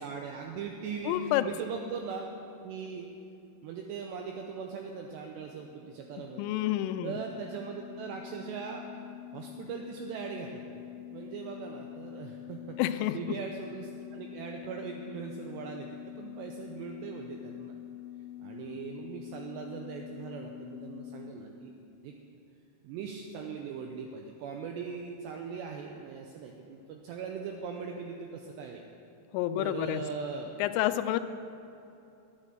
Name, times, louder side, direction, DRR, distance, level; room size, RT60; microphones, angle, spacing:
voice 1, 0.0-2.3 2.6-3.1 3.6-6.6 7.0-9.0 9.3-10.8 11.1-15.9 16.2-17.8 18.4-21.7 22.0-22.1 22.8-28.8 29.6-30.5, right 5 dB, 85° right, 2 dB, 2.4 m, -40 dB
voice 2, 1.1-1.5 6.2-7.2 12.8-13.2 29.3-30.0 30.6-31.2, left 14 dB, 90° left, 11 dB, 3.1 m, -29 dB
sound 1, 5.1-21.2, left 13 dB, 15° right, 2.7 m, -46 dB
10.5 x 8.9 x 7.5 m, 2.7 s
omnidirectional pair, 5.7 m